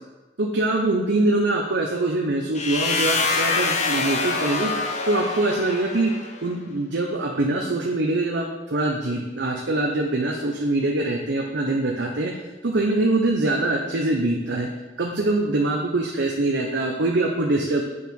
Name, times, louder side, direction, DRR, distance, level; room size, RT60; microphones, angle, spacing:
voice 1, 0.4-4.7 5.1-6.1 6.4-12.3 12.6-14.7 15.0-17.8, right 2 dB, 70° right, 0 dB, 0.9 m, -23 dB
sound 1, 2.6-6.4, left 4 dB, 35° left, 0.8 m, -25 dB
8.4 x 4.7 x 5.4 m, 1.1 s
head